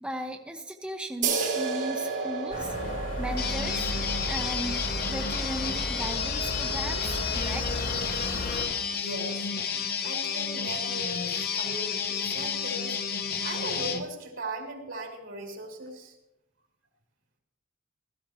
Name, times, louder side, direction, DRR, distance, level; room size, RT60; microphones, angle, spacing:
voice 1, 0.0-2.7 3.2-3.9 4.3-4.8 5.1-7.7, equal, 5° right, 2 dB, 0.7 m, -36 dB
sound 1, 1.2-8.4, right 4 dB, 65° right, 3.8 m, -34 dB
sound 2, 2.5-8.7, left 1 dB, 75° left, 3.9 m, -34 dB
sound 3, 3.4-14.0, left 6 dB, 50° left, 0.8 m, -31 dB
voice 2, 8.9-13.0 13.4-16.1, right 2 dB, 80° right, 0 dB, 3.3 m, -38 dB
16.5 x 14.5 x 3.0 m, 0.93 s
head